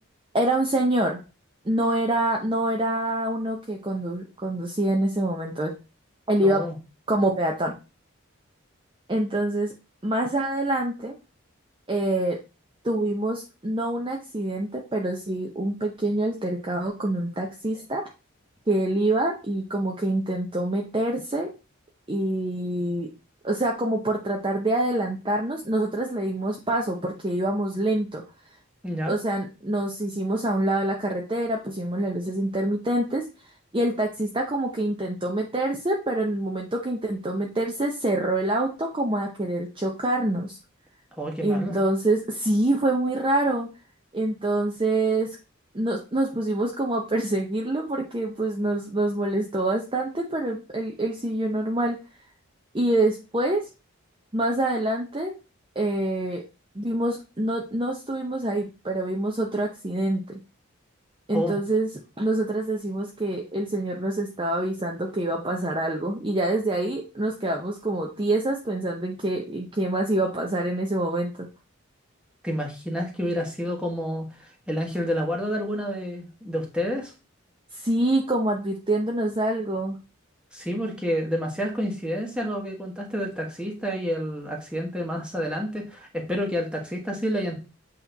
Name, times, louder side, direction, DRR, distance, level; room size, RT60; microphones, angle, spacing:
voice 1, 0.3-1.2 1.6-5.7 6.3-6.7 7.1-7.7 9.1-9.7 10.0-11.1 11.9-12.4 12.8-18.0 18.7-21.5 22.1-23.1 23.4-28.2 29.1-33.3 33.7-40.6 41.4-43.7 44.1-45.4 45.7-52.0 52.7-53.7 54.3-55.3 55.8-56.4 56.7-60.4 61.3-61.9 62.2-71.5 77.7-80.0, right 1 dB, 25° right, 0 dB, 0.7 m, -26 dB
voice 2, 6.4-6.7 28.8-29.1 41.1-41.8 61.3-61.6 72.4-77.1 80.5-87.6, equal, 5° right, 0 dB, 1.4 m, -29 dB
8.1 x 3.1 x 4.0 m, 0.30 s
head